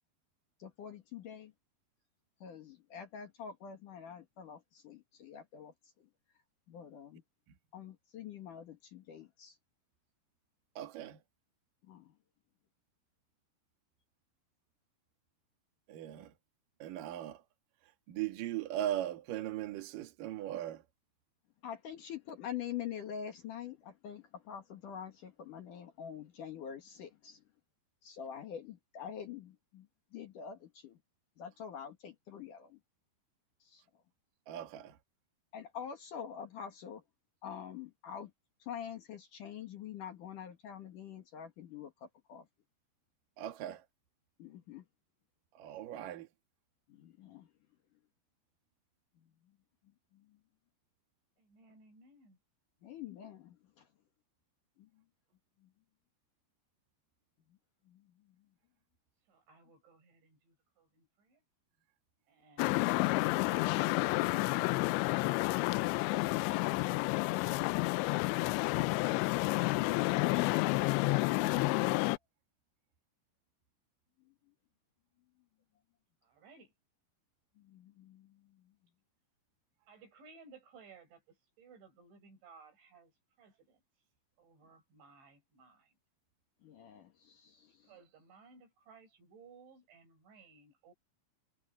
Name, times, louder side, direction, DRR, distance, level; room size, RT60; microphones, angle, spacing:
voice 1, 0.6-1.5 2.4-6.1 6.7-7.2 7.7-9.6 11.8-12.1 21.6-27.4 28.0-31.0 31.4-32.8 33.6-33.8 35.5-37.0 37.4-38.3 38.6-42.5 44.4-44.9 46.9-47.5 49.2-49.3 50.1-50.4 52.8-53.9 54.8-54.9 55.6-55.7 57.9-58.0 74.3-74.4 77.6-78.7 86.6-87.9, left 8 dB, 55° left, 2.6 m, -46 dB
voice 2, 10.8-11.2 15.9-16.3 16.8-17.4 18.1-20.8 34.5-35.0 43.4-43.8 45.6-46.3, right 12 dB, 55° right, 3.1 m, -39 dB
voice 3, 51.4-52.4 59.3-61.4 62.3-63.9 65.8-67.5 76.2-76.7 79.9-83.8 84.4-86.0 87.7-90.9, right 4 dB, 85° right, 8.5 m, -60 dB
sound 1, 62.6-72.2, left 22 dB, 85° left, 2.9 m, -30 dB
omnidirectional pair, 5.2 m